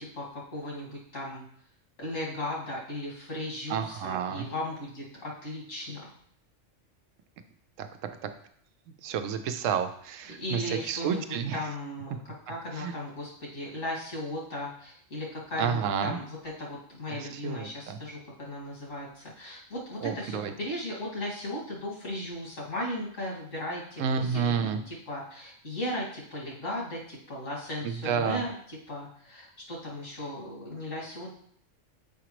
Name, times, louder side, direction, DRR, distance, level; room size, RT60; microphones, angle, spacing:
voice 1, 0.0-1.4 2.0-6.1 10.3-31.3, left 1 dB, 85° left, -5 dB, 2.4 m, -37 dB
voice 2, 3.7-4.5 7.8-7.9 8.2-8.3 9.0-11.6 12.8-12.9 15.6-16.2 17.1-18.0 20.0-20.5 24.0-24.8 27.8-28.4, right 7 dB, 85° right, 9 dB, 1.0 m, -30 dB
7.1 x 5.0 x 3.0 m, 0.63 s
omnidirectional pair, 1.3 m